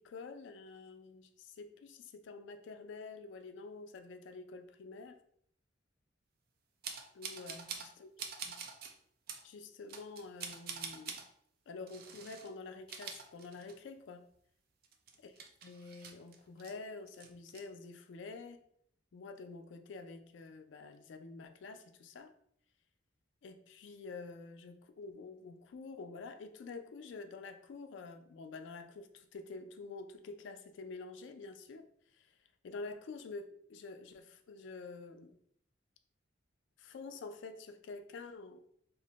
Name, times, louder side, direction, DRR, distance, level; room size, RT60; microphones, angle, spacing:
voice 1, 0.0-5.2 7.1-8.1 8.4-8.6 9.4-11.2 11.7-14.3 15.2-15.3 15.6-18.6 19.1-22.3 23.4-31.9 32.1-32.3 32.6-35.4 36.8-38.6, left 3 dB, 75° left, 0.3 m, -48 dB
sound 1, 6.8-7.9 8.2-8.9 9.3-9.4 9.9-11.3 11.9-12.5 12.8-14.0 14.3-14.4 14.8-16.7 17.1-17.6, right 6 dB, 55° right, 0.4 m, -45 dB
2.5 x 2.1 x 3.9 m
head